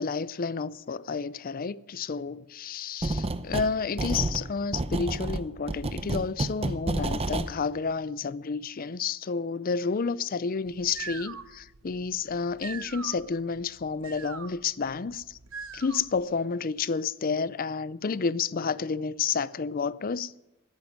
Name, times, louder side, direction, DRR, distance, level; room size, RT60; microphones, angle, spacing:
voice 1, 0.0-15.4 15.7-20.3, left 5 dB, 40° left, 0.5 m, -30 dB
sound 1, 3.0-3.7 4.0-7.5, right 2 dB, 25° right, 0.7 m, -30 dB
sound 2, 10.7-16.3, right 6 dB, 65° right, 1.1 m, -43 dB
14.0 x 10.5 x 9.6 m
head